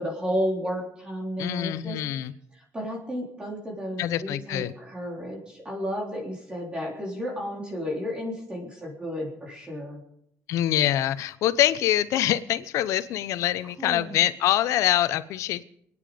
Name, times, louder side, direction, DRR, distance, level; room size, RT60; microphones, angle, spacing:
voice 1, 0.0-2.0 2.5-10.0 13.8-14.2, equal, 20° right, -1 dB, 3.8 m, -32 dB
voice 2, 1.4-2.3 4.0-4.7 10.5-15.6, left 12 dB, 80° left, 15 dB, 0.8 m, -25 dB
28.0 x 9.7 x 5.1 m, 0.73 s
cardioid pair, 145°, 5 cm